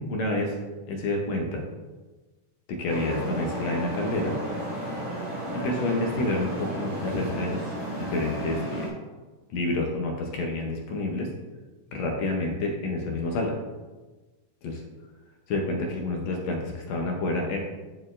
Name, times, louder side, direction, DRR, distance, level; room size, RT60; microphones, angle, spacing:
voice 1, 0.1-0.5 0.9-1.6 2.7-4.4 5.5-7.7 8.1-8.9 9.5-11.3 11.9-13.5 14.6-14.8 15.5-17.6, left 2 dB, 70° left, 1 dB, 1.8 m, -28 dB
Traffic noise roadway noise, 2.9-8.9, right 1 dB, 15° right, 0.9 m, -33 dB
11.0 x 4.4 x 2.5 m, 1.2 s
omnidirectional pair, 3.6 m